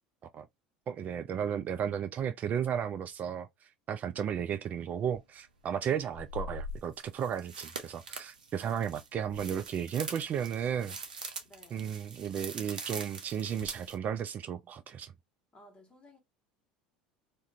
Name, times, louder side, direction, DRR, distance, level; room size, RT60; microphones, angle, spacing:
voice 1, 0.9-11.3 11.7-15.1, right 8 dB, 40° right, 0.3 m, -34 dB
sound 1, 5.1-5.2 6.1-14.0, right 2 dB, 80° right, 0.6 m, -43 dB
voice 2, 11.4-11.9 15.5-16.2, left 1 dB, 25° left, 1.1 m, -57 dB
2.4 x 2.2 x 2.7 m
hypercardioid pair, 75°, 4 cm